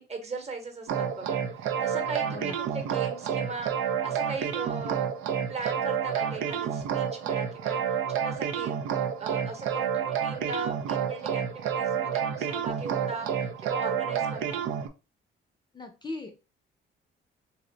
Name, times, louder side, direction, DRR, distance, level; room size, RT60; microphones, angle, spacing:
voice 1, 0.0-3.7 4.0-5.0 5.5-8.8 9.2-14.7, right 4 dB, 35° right, 4 dB, 1.0 m, -38 dB
sound 1, 0.9-14.9, right 8 dB, 85° right, 0.5 m, -29 dB
voice 2, 2.2-2.6 15.7-16.3, left 2 dB, 20° left, 5 dB, 0.5 m, -39 dB
2.6 x 2.1 x 3.8 m, 0.31 s
cardioid pair, 90°, 20 cm